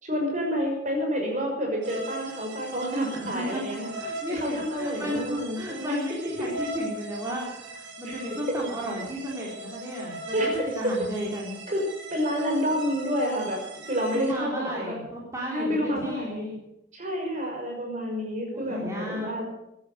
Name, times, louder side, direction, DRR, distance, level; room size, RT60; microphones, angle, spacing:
voice 1, 0.0-3.9 4.3-6.0 8.1-8.6 10.3-11.0 11.7-13.6 13.9-15.0 15.5-16.4 16.9-19.4, equal, 40° right, 1 dB, 5.9 m, -29 dB
sound 1, 1.8-14.3, right 2 dB, 85° right, 3.5 m, -39 dB
voice 2, 3.2-3.6 3.9-11.6 14.1-16.5 18.5-19.3, equal, 15° right, -4 dB, 4.0 m, -34 dB
16.0 x 11.0 x 8.1 m, 0.85 s
head